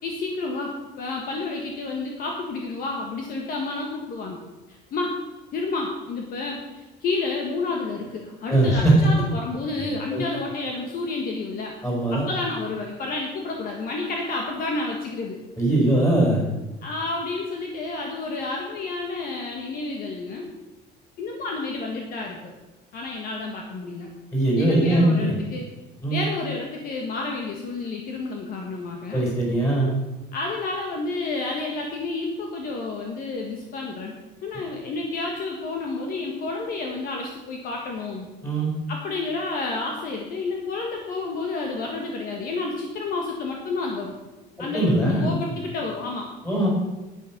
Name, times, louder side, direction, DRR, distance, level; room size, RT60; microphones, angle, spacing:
voice 1, 0.0-4.4 4.7-5.2 5.5-11.7 12.1-15.4 16.8-20.5 21.2-22.5 22.9-24.1 24.5-25.6 26.1-29.2 30.3-34.1 34.4-38.3 38.9-44.1 44.6-46.3, left 3 dB, 50° left, 1 dB, 1.6 m, -30 dB
voice 2, 8.5-8.9 9.8-9.9 10.1-10.2 11.8-12.3 15.6-16.5 24.3-25.3 26.0-26.3 29.1-29.9 38.4-38.7 44.7-45.3 46.5-46.7, right 1 dB, 15° left, -3 dB, 5.3 m, -21 dB
10.5 x 9.6 x 6.1 m, 1.1 s
cardioid pair, 170°, 18 cm